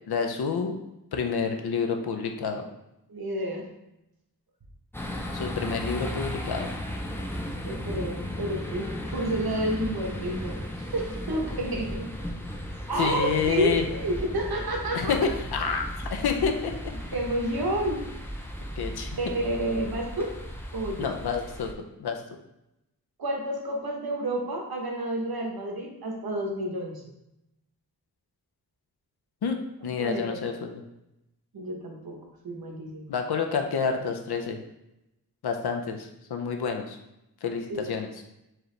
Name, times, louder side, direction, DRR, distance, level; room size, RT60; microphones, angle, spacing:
voice 1, 0.1-0.7 1.1-2.6 5.3-6.7 13.0-13.8 14.9-16.7 18.8-19.2 21.0-21.7 22.0-22.2 29.4-29.6 29.8-30.8 33.1-34.6 35.4-37.0 37.4-38.1, left 6 dB, 90° left, 4 dB, 0.6 m, -28 dB
voice 2, 3.1-3.6 7.6-12.1 12.9-15.2 17.1-18.0 19.1-20.3 20.7-21.1 23.2-27.0 30.0-30.4 31.5-32.2 32.4-33.1 37.7-37.9, right 1 dB, 70° right, 0 dB, 1.0 m, -30 dB
sound 1, 4.9-21.7, equal, 5° left, 0.4 m, -35 dB
4.7 x 2.9 x 3.2 m, 0.87 s
wide cardioid pair, 105°, 37 cm